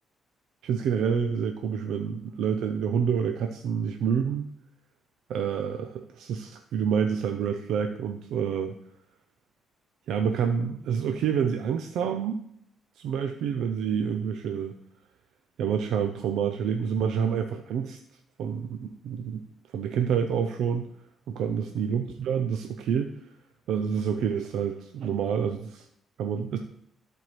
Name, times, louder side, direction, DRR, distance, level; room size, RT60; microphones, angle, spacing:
voice 1, 0.6-4.5 5.3-8.7 10.1-12.4 13.0-14.7 15.6-18.0 18.4-19.5 19.7-20.9 21.3-23.1 23.7-25.9 26.2-26.6, right 7 dB, 80° right, 6 dB, 0.5 m, -28 dB
13.0 x 4.5 x 3.1 m, 0.71 s
cardioid pair, 85°, 0 cm